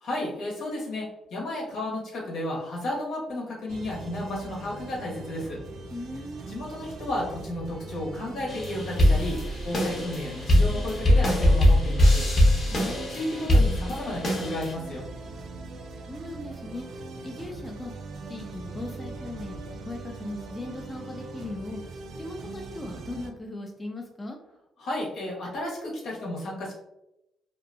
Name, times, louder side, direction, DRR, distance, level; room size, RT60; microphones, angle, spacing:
voice 1, 0.0-5.6 6.5-12.3 13.1-15.1 24.8-26.7, left 1 dB, 75° left, -3 dB, 1.0 m, -33 dB
sound 1, 3.7-23.3, right 2 dB, 65° right, 0.3 m, -40 dB
voice 2, 5.9-6.5 12.7-13.1 16.0-16.9 17.2-17.9 18.3-21.8 22.2-24.4, left 1 dB, 20° left, 2 dB, 0.4 m, -38 dB
sound 2, 8.5-14.7, left 1 dB, 45° left, 0.7 m, -22 dB
2.6 x 2.3 x 2.5 m, 0.88 s
cardioid pair, 90°, 0 cm